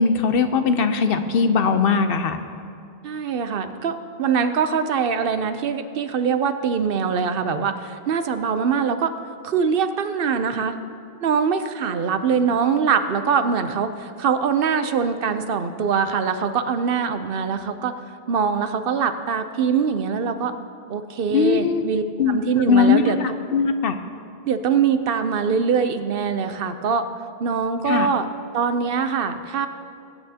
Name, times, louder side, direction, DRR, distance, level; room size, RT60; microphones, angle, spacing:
voice 1, 0.0-2.4 21.3-21.8 22.2-23.9 27.9-28.1, left 5 dB, 70° left, 9 dB, 0.8 m, -20 dB
voice 2, 3.0-9.1 9.4-10.8 11.2-17.9 18.3-20.5 20.9-23.2 24.5-27.1 27.4-28.3 28.5-29.7, right 6 dB, 65° right, 10 dB, 0.8 m, -23 dB
21.0 x 8.9 x 2.8 m, 2.5 s
omnidirectional pair, 1.0 m